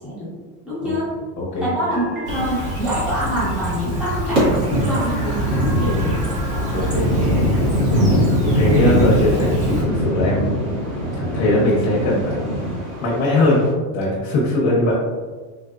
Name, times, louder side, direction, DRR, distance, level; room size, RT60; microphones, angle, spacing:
voice 1, 0.6-1.1 1.6-5.5 5.8-6.4, equal, ahead, -9 dB, 0.8 m, -25 dB
voice 2, 1.4-1.7 5.8-6.3 6.7-7.1 8.4-10.6 11.2-12.4 13.0-13.6 13.9-15.0, left 1 dB, 40° left, -5 dB, 0.8 m, -20 dB
sound 1, 1.9-3.7, right 1 dB, 40° right, 1.0 m, -36 dB
Chirp tweet, 2.3-9.8, right 1 dB, 20° right, 0.3 m, -27 dB
sound 2, 4.4-13.7, equal, 60° right, 1.3 m, -21 dB
3.6 x 2.5 x 2.4 m, 1.4 s
supercardioid pair, 145°, 44 cm